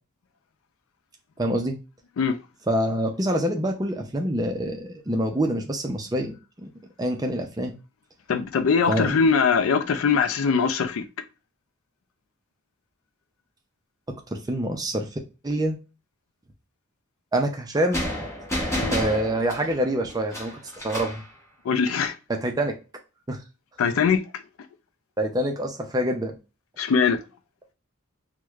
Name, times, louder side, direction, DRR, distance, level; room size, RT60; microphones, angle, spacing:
voice 1, 1.4-1.8 2.7-6.7 7.0-7.7 8.9-9.1 14.3-15.1 15.4-15.8 17.3-18.0 18.9-21.2 22.3-22.7 23.3-23.4 25.2-26.4, right 1 dB, 15° right, 0.4 m, -26 dB
voice 2, 8.3-11.0 18.7-18.9 21.6-22.2 23.8-24.4 26.8-27.2, left 6 dB, 70° left, 0.4 m, -22 dB
sound 1, 17.9-21.3, equal, 15° left, 0.8 m, -30 dB
4.6 x 2.1 x 2.3 m
head